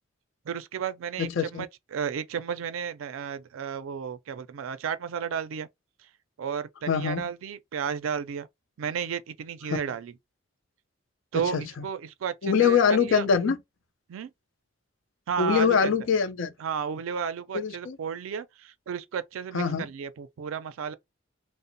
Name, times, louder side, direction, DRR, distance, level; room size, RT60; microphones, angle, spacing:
voice 1, 0.5-5.7 6.4-8.5 8.8-10.1 11.3-13.2 14.1-14.3 15.3-15.9 16.6-20.9, right 7 dB, 85° right, 0.4 m, -33 dB
voice 2, 1.2-1.7 6.9-7.3 9.7-9.8 11.5-11.9 12.4-13.6 15.4-16.5 17.5-18.0 19.5-19.9, left 6 dB, 70° left, 0.4 m, -24 dB
2.9 x 2.0 x 2.5 m
head